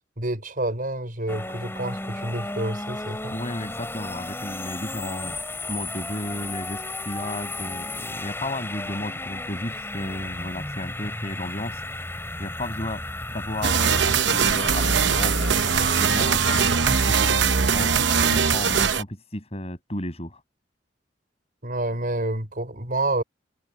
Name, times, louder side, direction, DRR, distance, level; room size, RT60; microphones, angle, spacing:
voice 1, 0.2-3.3 12.3-12.4 21.6-23.2, right 2 dB, 45° right, 5.5 m, -28 dB
sound 1, 1.3-17.3, left 2 dB, 10° left, 7.7 m, -34 dB
voice 2, 3.3-11.8 12.4-15.4 15.6-20.4, left 1 dB, 35° left, 6.5 m, -33 dB
sound 2, 13.6-19.0, right 6 dB, 65° right, 0.9 m, -21 dB
head